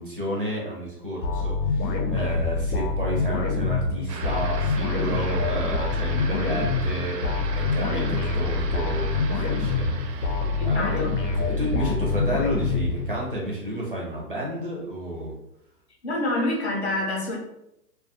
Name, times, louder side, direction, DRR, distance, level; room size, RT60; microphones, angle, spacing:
voice 1, 0.0-10.3 10.6-15.3, equal, 35° right, -3 dB, 0.4 m, -31 dB
sound 1, 1.2-13.5, left 3 dB, 85° left, 0.7 m, -26 dB
sound 2, 4.1-13.2, right 5 dB, 80° right, 0.5 m, -38 dB
voice 2, 10.4-11.1 16.0-17.4, left 1 dB, 45° left, -1 dB, 0.5 m, -27 dB
2.3 x 2.2 x 2.7 m, 0.83 s
hypercardioid pair, 170°, 49 cm